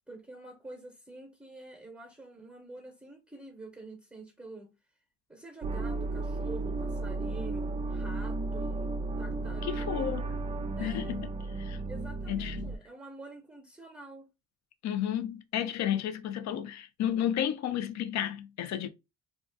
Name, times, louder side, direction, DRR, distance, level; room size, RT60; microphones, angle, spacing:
voice 1, 0.1-4.7 5.3-10.2 10.8-11.2 11.9-14.3, right 2 dB, 5° right, 0.9 m, -47 dB
sound 1, 5.6-12.8, right 3 dB, 25° right, 0.4 m, -34 dB
voice 2, 9.6-10.2 10.8-11.3 11.6-11.8 12.3-12.7 14.8-18.9, left 10 dB, 65° left, 0.5 m, -32 dB
2.4 x 2.4 x 3.8 m
cardioid pair, 90°, 30 cm